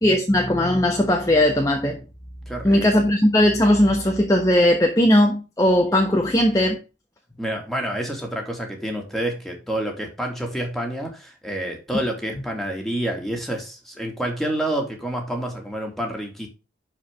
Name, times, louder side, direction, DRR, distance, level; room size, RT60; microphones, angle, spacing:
voice 1, 0.0-2.0 2.6-6.8, left 1 dB, 20° left, 1.2 m, -18 dB
voice 2, 2.5-2.8 7.4-16.5, right 1 dB, ahead, 2.7 m, -28 dB
11.5 x 5.1 x 3.7 m
head